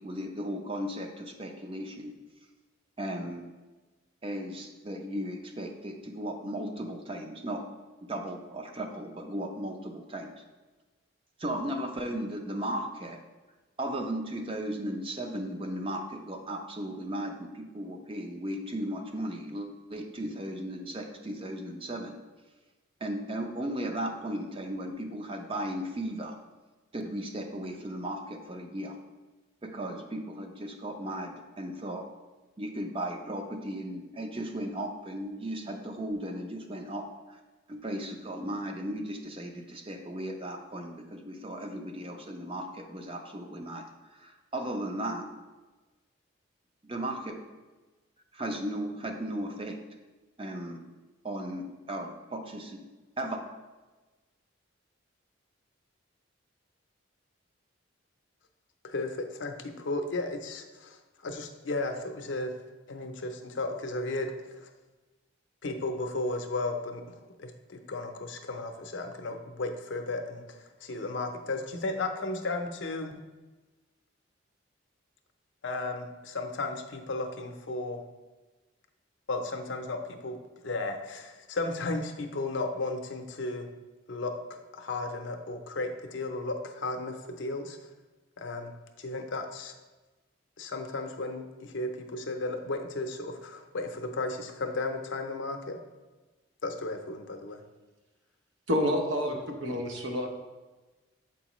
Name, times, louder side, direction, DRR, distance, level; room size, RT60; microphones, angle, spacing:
voice 1, 0.0-2.1 3.0-3.4 4.2-7.6 8.1-10.3 11.4-13.2 13.8-22.2 23.0-26.4 26.9-29.0 29.6-32.1 32.6-37.4 37.7-43.8 44.1-45.3 46.8-47.4 48.3-49.8 50.4-50.8 51.2-52.8 53.2-53.4, right 1 dB, 25° right, 4 dB, 0.6 m, -36 dB
voice 2, 58.8-62.5 62.9-64.7 65.6-73.2 75.6-78.0 79.3-80.4 80.6-83.7 84.1-87.8 88.4-88.7 89.0-89.7 90.6-95.8 96.6-97.6, left 2 dB, 65° left, 5 dB, 0.6 m, -34 dB
voice 3, 98.7-100.3, equal, 65° right, 2 dB, 0.8 m, -28 dB
7.1 x 4.6 x 3.0 m, 1.2 s
head